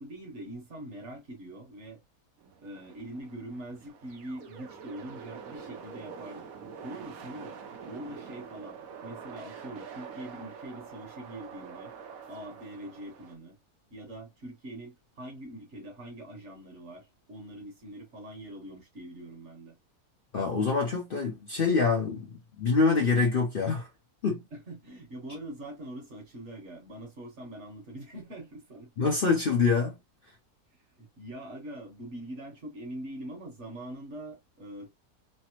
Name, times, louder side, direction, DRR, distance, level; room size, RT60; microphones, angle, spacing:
voice 1, 0.0-2.0 2.4-6.5 6.8-7.6 7.9-11.9 12.3-13.6 13.9-19.7 24.5-28.9 31.0-34.9, right 1 dB, 55° right, 1.3 m, -43 dB
sound 1, 2.4-13.4, right 6 dB, 75° right, 1.1 m, -46 dB
voice 2, 20.3-22.3 22.6-23.9 24.2-24.4 29.0-30.0, left 4 dB, 50° left, 0.7 m, -25 dB
3.3 x 2.0 x 2.9 m
omnidirectional pair, 1.6 m